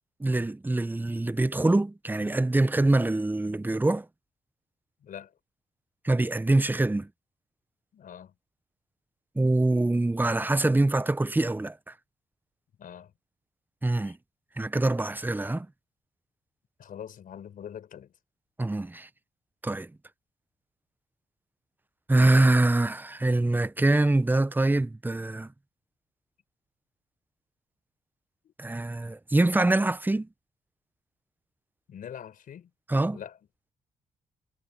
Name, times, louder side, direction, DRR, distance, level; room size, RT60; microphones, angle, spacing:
voice 1, 0.2-4.1 6.0-7.1 9.4-11.8 13.8-14.2 14.6-15.7 18.6-19.1 19.6-19.9 22.1-25.5 28.6-30.3 32.9-33.2, right 2 dB, 10° right, 0.8 m, -24 dB
voice 2, 5.0-5.3 7.9-8.3 12.8-13.1 14.1-14.2 16.8-18.1 28.4-28.5 31.9-32.7 33.1-33.4, left 9 dB, 70° left, 4.5 m, -43 dB
supercardioid pair, 60°, 15 cm